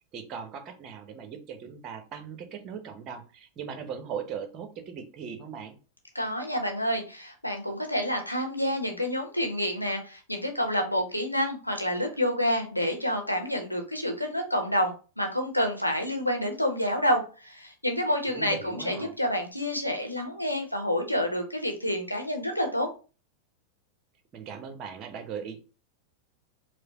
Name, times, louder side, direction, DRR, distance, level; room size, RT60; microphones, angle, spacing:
voice 1, 0.1-5.8 18.3-19.1 24.3-25.6, right 7 dB, 35° right, 7 dB, 0.8 m, -39 dB
voice 2, 6.1-22.9, equal, 90° left, 3 dB, 0.8 m, -28 dB
4.7 x 2.0 x 2.9 m, 0.34 s
figure-of-eight pair, 90°, 0 cm